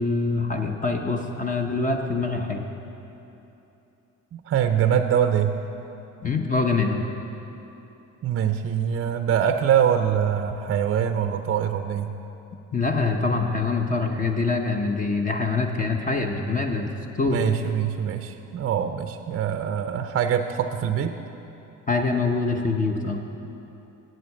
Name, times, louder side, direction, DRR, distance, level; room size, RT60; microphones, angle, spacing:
voice 1, 0.0-2.6 6.2-7.1 12.7-16.9 17.2-17.4 21.9-23.2, left 3 dB, 25° left, 3 dB, 0.8 m, -24 dB
voice 2, 4.3-5.5 8.2-12.1 17.3-21.2, right 8 dB, 45° right, 7 dB, 0.5 m, -23 dB
7.8 x 7.6 x 8.3 m, 3.0 s
cardioid pair, 90°, 30 cm